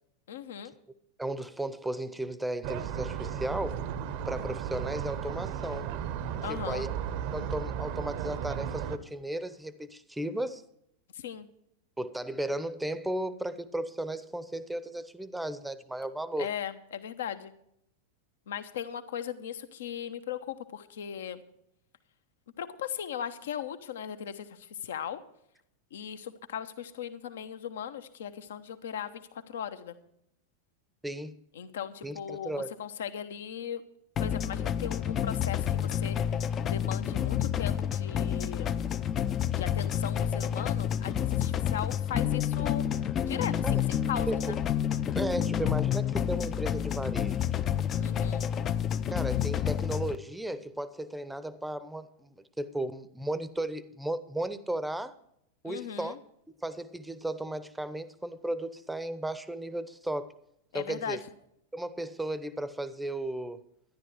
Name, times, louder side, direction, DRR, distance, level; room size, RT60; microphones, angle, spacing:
voice 1, 0.3-0.7 6.4-6.9 11.1-11.5 16.4-17.5 18.5-21.4 22.6-25.2 25.9-30.0 31.5-33.8 34.2-38.7 39.5-42.9 43.2-44.6 48.0-48.4 55.6-56.2 60.7-61.2, left 9 dB, 60° left, 1.0 m, -38 dB
voice 2, 1.2-3.9 4.3-5.9 6.5-6.9 7.3-10.6 12.0-16.5 31.0-31.4 32.0-32.7 43.6-43.8 44.3-44.6 45.1-47.4 49.1-55.2 55.6-56.2 56.6-60.3 60.7-61.2 61.7-63.6, right 1 dB, 5° right, 0.8 m, -35 dB
sound 1, 2.6-9.0, right 9 dB, 45° right, 0.9 m, -35 dB
sound 2, 34.2-50.1, left 9 dB, 30° left, 0.6 m, -29 dB
12.5 x 11.0 x 4.8 m
figure-of-eight pair, 90°, 0 cm